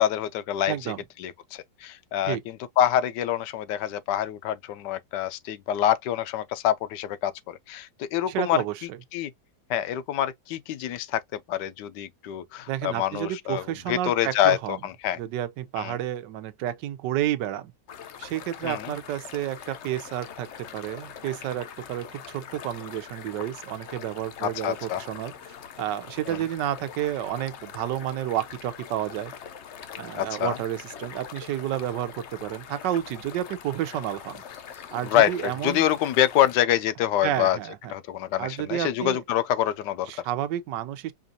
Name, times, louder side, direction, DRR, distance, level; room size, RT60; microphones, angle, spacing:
voice 1, 0.0-0.9 1.2-8.6 9.1-9.3 9.7-15.2 15.8-16.0 18.6-18.9 24.4-25.0 26.3-26.4 30.1-30.6 35.0-37.6 37.9-40.1, left 11 dB, 80° left, 1.2 m, -26 dB
voice 2, 0.7-1.0 2.2-2.4 8.3-9.0 12.7-14.8 15.2-17.7 18.2-29.3 30.0-34.4 34.9-35.9 37.2-37.9 38.4-39.2 40.1-41.1, right 12 dB, 80° right, 1.3 m, -31 dB
sound 1, 17.9-36.6, left 8 dB, 65° left, 0.7 m, -43 dB
5.1 x 2.4 x 2.6 m
omnidirectional pair, 1.9 m